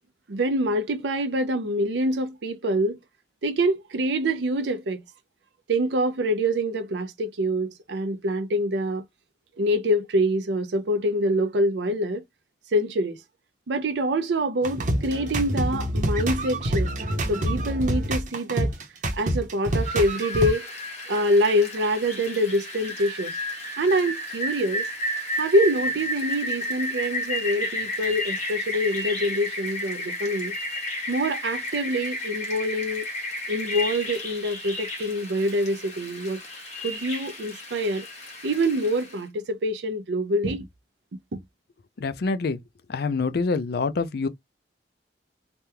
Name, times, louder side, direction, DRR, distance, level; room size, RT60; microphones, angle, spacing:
voice 1, 0.3-3.0 3.4-5.0 5.7-9.0 9.6-12.2 12.7-13.2 13.7-16.9 17.3-18.7 19.2-20.7 21.1-23.4 23.8-24.9 25.4-30.5 31.1-33.1 33.5-36.4 36.8-38.1 38.4-40.7 41.3-41.4, equal, 80° right, 0.5 m, -25 dB
sound 1, 14.6-20.5, right 1 dB, 45° right, 0.8 m, -26 dB
Rain, 19.7-39.2, left 1 dB, 40° left, 1.1 m, -32 dB
voice 2, 42.0-42.6 42.9-44.3, left 4 dB, 60° left, 0.4 m, -26 dB
3.4 x 2.2 x 2.7 m
head